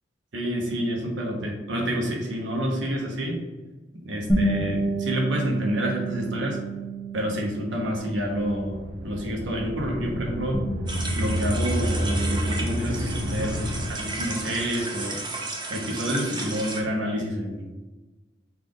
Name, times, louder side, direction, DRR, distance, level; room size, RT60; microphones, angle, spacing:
voice 1, 0.3-3.4 4.0-6.6 7.1-10.6 11.1-15.2 15.7-17.7, equal, 85° right, 0 dB, 1.0 m, -28 dB
Bass guitar, 4.3-10.5, right 2 dB, 5° right, 0.9 m, -30 dB
sound 1, 8.2-14.9, equal, 65° right, 0.6 m, -30 dB
sound 2, 10.9-16.8, right 2 dB, 25° right, 0.6 m, -34 dB
5.7 x 2.5 x 3.7 m, 1.2 s
head